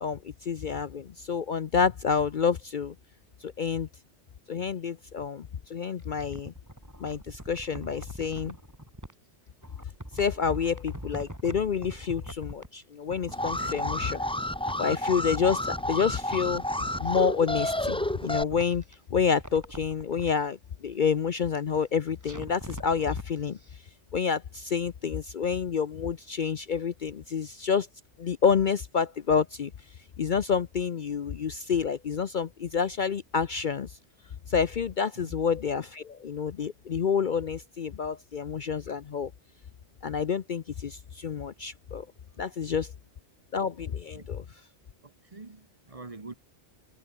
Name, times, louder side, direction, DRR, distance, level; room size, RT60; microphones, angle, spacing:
voice 1, 0.0-2.9 3.4-3.9 4.5-6.5 7.0-8.6 10.1-14.2 14.8-16.6 17.0-18.8 19.1-23.6 24.1-27.9 28.2-29.7 30.2-34.0 34.5-39.3 40.0-42.1 42.4-42.9 43.5-44.4, left 6 dB, 50° left, 0.7 m, -28 dB
sound 1, 6.0-9.1 9.6-12.8 13.1-14.9 15.2-17.1 17.5-19.0 19.3-20.3 22.2-23.3 23.6-23.7, equal, 15° right, 7.3 m, -44 dB
Alarm, 13.3-18.4, left 1 dB, 5° left, 0.6 m, -30 dB
voice 2, 13.4-13.8 35.2-35.4 44.1-44.3 45.0-46.3, right 3 dB, 30° right, 1.2 m, -45 dB
omnidirectional pair, 1.2 m